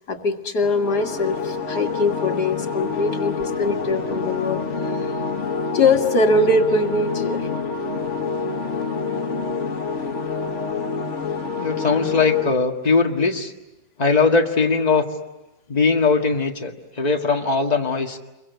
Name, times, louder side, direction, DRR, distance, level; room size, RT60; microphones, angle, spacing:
voice 1, 0.0-5.2 5.7-7.5 10.2-10.3, left 2 dB, 75° left, 4 dB, 2.4 m, -22 dB
sound 1, 0.6-12.5, left 4 dB, 45° left, 1.7 m, -27 dB
voice 2, 11.6-13.5 14.0-15.0 15.7-18.2, left 4 dB, 25° left, 2 dB, 1.9 m, -20 dB
28.5 x 23.0 x 8.2 m, 0.96 s
omnidirectional pair, 1.7 m